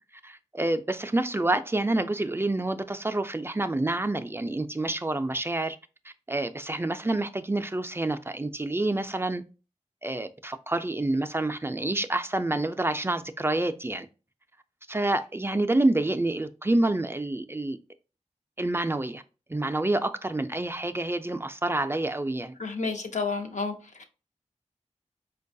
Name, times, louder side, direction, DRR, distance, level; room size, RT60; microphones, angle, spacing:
voice 1, 0.2-5.8 6.3-9.4 10.0-14.1 14.9-17.8 18.6-19.2 19.5-22.5, right 2 dB, 20° right, 0.3 m, -28 dB
voice 2, 22.6-23.7 24.0-24.1, left 4 dB, 80° left, 0.6 m, -30 dB
4.5 x 2.3 x 2.6 m
cardioid pair, 50°, 12 cm